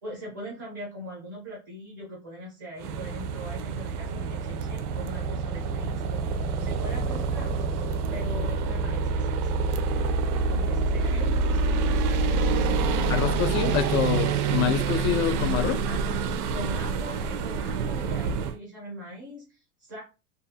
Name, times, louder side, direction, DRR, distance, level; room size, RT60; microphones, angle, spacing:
voice 1, 0.0-9.6 10.5-13.3 15.9-16.3 16.5-20.0, equal, 15° right, 0.4 m, -41 dB
sound 1, 2.8-18.6, right 4 dB, 85° right, 0.6 m, -27 dB
voice 2, 13.1-15.8, left 10 dB, 65° left, 0.6 m, -26 dB
2.5 x 2.4 x 2.6 m
supercardioid pair, 180°, 45 cm